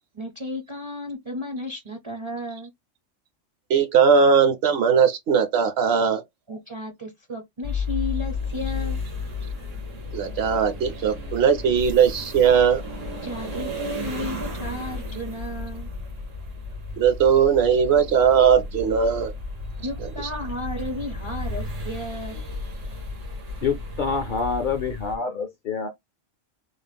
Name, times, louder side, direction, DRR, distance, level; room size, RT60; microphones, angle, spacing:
voice 1, 0.1-2.7 6.5-9.0 13.2-15.9 19.8-22.4, left 1 dB, 35° right, 0.5 m, -33 dB
voice 2, 3.7-6.2 10.1-12.8 17.0-19.3, right 7 dB, 65° right, 0.8 m, -19 dB
sound 1, 7.6-25.2, left 3 dB, 85° right, 1.6 m, -33 dB
voice 3, 23.6-25.9, left 5 dB, 55° left, 0.6 m, -26 dB
3.6 x 2.0 x 3.4 m
omnidirectional pair, 1.3 m